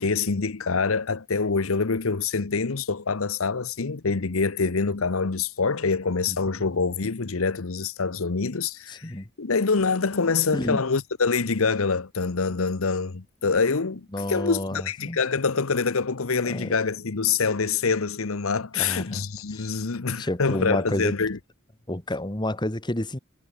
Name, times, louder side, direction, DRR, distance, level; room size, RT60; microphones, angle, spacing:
voice 1, 0.0-21.4, left 4 dB, 75° left, 0.9 m, -25 dB
voice 2, 8.9-9.3 10.5-10.8 14.1-15.2 16.5-16.8 18.7-19.6 20.2-21.1 21.9-23.2, left 1 dB, 20° left, 1.8 m, -30 dB
head